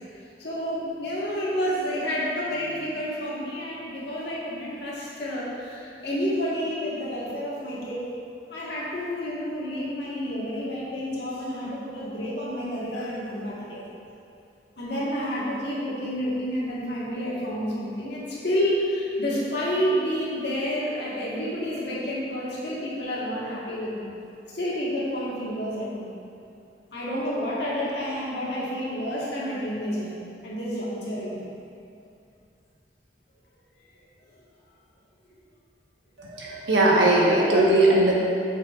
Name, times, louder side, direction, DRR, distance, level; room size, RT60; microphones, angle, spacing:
voice 1, 0.4-8.1 8.5-13.9 14.8-24.1 24.5-26.1 26.9-30.1 30.4-31.5, equal, 70° left, -6 dB, 1.5 m, -29 dB
voice 2, 36.2-38.1, right 1 dB, 90° right, -4 dB, 1.2 m, -19 dB
7.8 x 6.2 x 2.5 m, 2.5 s
head